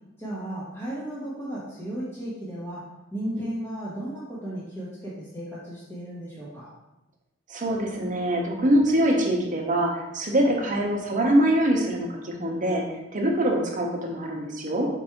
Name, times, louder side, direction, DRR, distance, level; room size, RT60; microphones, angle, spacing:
voice 1, 0.2-2.8 3.1-6.7, right 1 dB, 10° left, -10 dB, 1.1 m, -35 dB
voice 2, 7.5-12.8 13.1-14.9, right 1 dB, 40° right, 0 dB, 0.8 m, -24 dB
4.6 x 2.6 x 4.4 m, 0.93 s
head